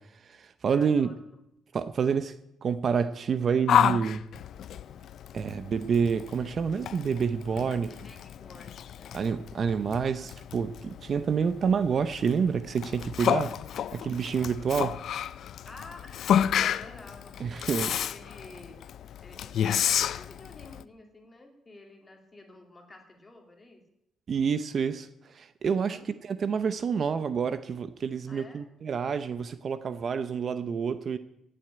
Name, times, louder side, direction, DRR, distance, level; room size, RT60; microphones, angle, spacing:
voice 1, 0.1-1.1 1.7-2.3 2.6-4.2 5.3-7.9 9.1-13.5 13.9-15.0 17.4-17.9 24.3-31.2, right 6 dB, 40° right, 13 dB, 0.7 m, -28 dB
voice 2, 0.7-1.2 7.9-9.2 15.6-18.8 19.2-23.8 25.6-26.1 28.3-28.6, left 2 dB, 20° left, 3 dB, 2.6 m, -50 dB
Yell, 3.7-20.8, left 9 dB, 60° left, 0.5 m, -31 dB
17.5 x 7.8 x 8.6 m, 0.82 s
cardioid pair, 135°, 0 cm